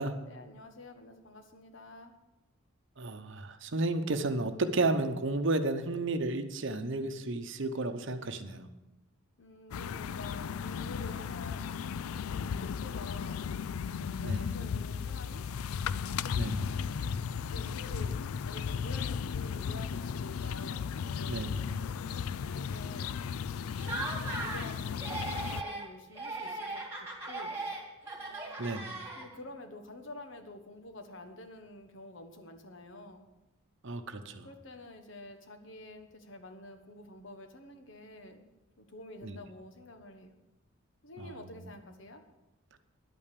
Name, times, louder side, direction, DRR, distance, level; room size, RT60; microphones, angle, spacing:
voice 1, 0.2-2.1 9.4-11.8 12.4-13.5 13.9-15.5 16.7-17.2 17.5-18.1 18.4-23.1 24.1-27.7 28.2-28.6 29.2-33.2 34.4-38.5 38.8-40.3 41.0-42.2, left 2 dB, 60° left, 6 dB, 1.3 m, -49 dB
voice 2, 3.0-8.7 14.2-14.5 16.3-16.7 21.3-21.6 28.6-28.9 33.8-34.5 39.2-39.4 41.2-41.7, right 2 dB, 60° right, 8 dB, 0.9 m, -33 dB
sound 1, 9.7-25.6, left 6 dB, 90° left, 0.4 m, -35 dB
Laughter, 23.8-24.7 25.0-25.9 26.2-29.5, right 2 dB, 10° right, 2.1 m, -38 dB
10.5 x 8.9 x 6.8 m, 0.99 s
head